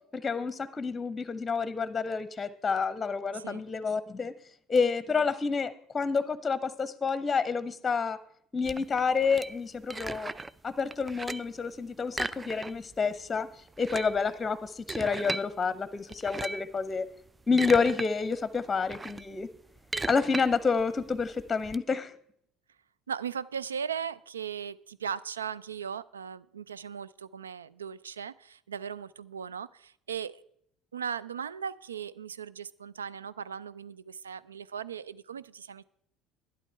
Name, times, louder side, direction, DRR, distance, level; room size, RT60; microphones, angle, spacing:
voice 1, 0.1-4.3 4.7-8.2 8.5-10.3 10.6-13.5 13.8-17.1 17.5-19.5 20.1-22.1, left 5 dB, 25° left, 15 dB, 0.8 m, -29 dB
voice 2, 3.3-3.6 23.1-30.4 30.9-35.8, right 7 dB, 85° right, 20 dB, 0.3 m, -38 dB
sound 1, 8.6-10.6 10.9-11.6 12.1-13.0 13.2-13.3 13.7-15.5 16.1-16.7 17.3-18.1 18.4-21.8, right 3 dB, 20° right, 0.4 m, -37 dB
11.5 x 10.5 x 4.6 m, 0.69 s
hypercardioid pair, 60°, 0 cm